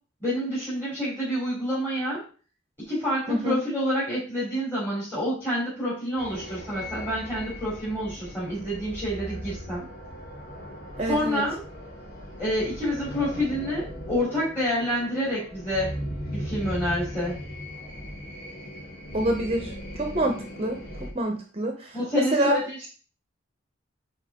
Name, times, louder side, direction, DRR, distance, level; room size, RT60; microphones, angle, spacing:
voice 1, 0.2-2.2 2.9-9.8 11.0-11.6 12.4-16.0 16.3-17.3 21.9-22.9, equal, 10° left, -9 dB, 3.5 m, -28 dB
voice 2, 3.3-3.6 11.0-11.4 19.1-19.7 20.0-20.8 21.1-22.6, right 1 dB, 30° right, 3 dB, 1.0 m, -26 dB
sound 1, 6.2-21.1, equal, 50° left, 3.1 m, -38 dB
9.7 x 4.6 x 3.7 m, 0.39 s
head